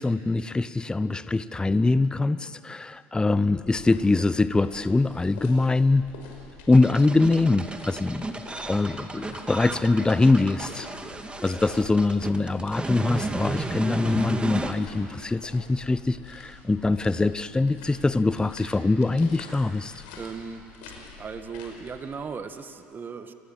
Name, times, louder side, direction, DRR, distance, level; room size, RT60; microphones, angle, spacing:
voice 1, 0.0-6.1 6.7-10.9 11.4-19.9, left 3 dB, 15° left, 15 dB, 0.8 m, -23 dB
sound 1, 3.4-22.2, left 4 dB, 80° left, 5.5 m, -47 dB
sound 2, 6.7-14.7, right 2 dB, 15° right, 2.2 m, -33 dB
voice 2, 20.2-20.7 21.2-23.3, right 5 dB, 35° right, 8 dB, 1.9 m, -37 dB
29.5 x 22.0 x 7.5 m, 2.8 s
hypercardioid pair, 75°, 6 cm